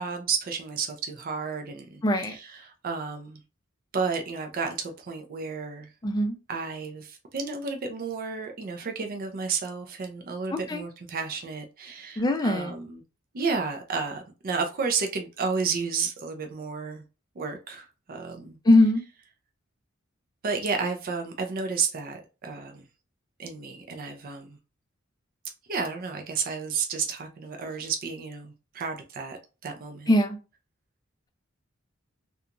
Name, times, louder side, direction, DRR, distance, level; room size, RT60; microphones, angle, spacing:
voice 1, 0.0-3.4 3.9-5.9 6.5-13.0 13.3-17.0 17.4-18.6 20.4-22.9 23.4-24.6 25.7-30.1, right 5 dB, 45° right, 0.4 m, -32 dB
voice 2, 2.0-2.4 6.0-6.3 10.7-10.8 12.2-12.8 18.7-19.0 30.1-30.4, left 1 dB, 20° left, 0.4 m, -21 dB
2.8 x 2.3 x 2.5 m
head